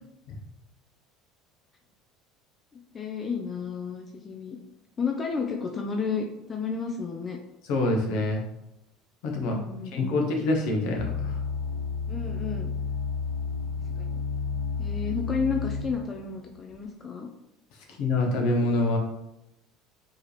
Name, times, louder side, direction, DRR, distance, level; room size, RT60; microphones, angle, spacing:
voice 1, 2.7-4.6 5.0-7.4 9.4-10.3 12.1-12.7 14.0-14.1 14.8-17.3, left 5 dB, 30° left, 2 dB, 0.6 m, -32 dB
voice 2, 7.6-8.4 9.2-9.6 9.9-11.4 18.0-19.0, left 2 dB, 65° left, 1 dB, 1.0 m, -25 dB
sound 1, 11.0-16.1 16.7-16.8, left 5 dB, 85° left, 0.5 m, -31 dB
4.6 x 3.0 x 3.2 m, 0.85 s
hypercardioid pair, 75°, 0 cm